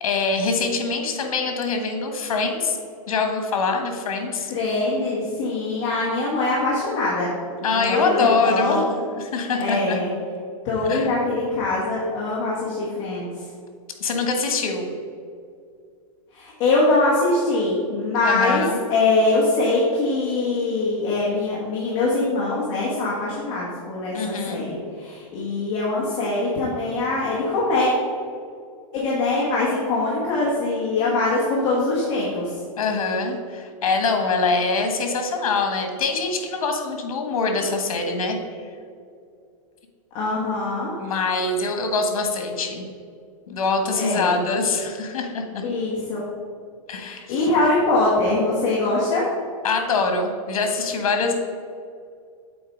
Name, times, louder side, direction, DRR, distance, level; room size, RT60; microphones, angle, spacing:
voice 1, 0.0-2.8 3.1-4.5 7.6-8.9 9.2-10.0 10.9-11.1 14.0-14.9 18.2-18.8 24.1-24.6 32.8-38.4 41.0-42.9 43.5-45.6 46.9-47.5 49.6-51.3, left 4 dB, 80° left, 5 dB, 1.5 m, -24 dB
voice 2, 4.5-7.3 7.6-9.0 9.6-10.1 10.6-13.5 16.3-18.6 18.9-27.9 28.9-32.6 40.1-40.9 43.9-44.4 45.6-46.2 47.1-49.3, left 2 dB, 25° left, -6 dB, 1.3 m, -23 dB
7.8 x 4.3 x 5.3 m, 2.3 s
supercardioid pair, 175°, 18 cm